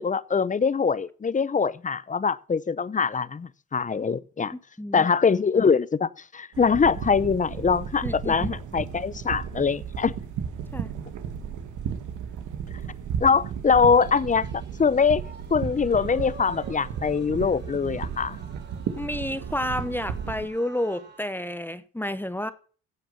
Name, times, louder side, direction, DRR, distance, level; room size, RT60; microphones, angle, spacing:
voice 1, 0.0-4.5 4.9-10.1 13.2-15.2 15.5-18.4, left 5 dB, 25° left, 0.7 m, -23 dB
voice 2, 4.5-5.1 8.0-8.5 10.7-10.9 19.0-22.5, left 1 dB, 5° left, 1.1 m, -30 dB
sound 1, 6.5-20.5, right 7 dB, 80° right, 1.9 m, -34 dB
sound 2, 13.9-21.2, right 4 dB, 35° right, 3.4 m, -49 dB
16.0 x 6.6 x 5.6 m
cardioid pair, 90°, 30 cm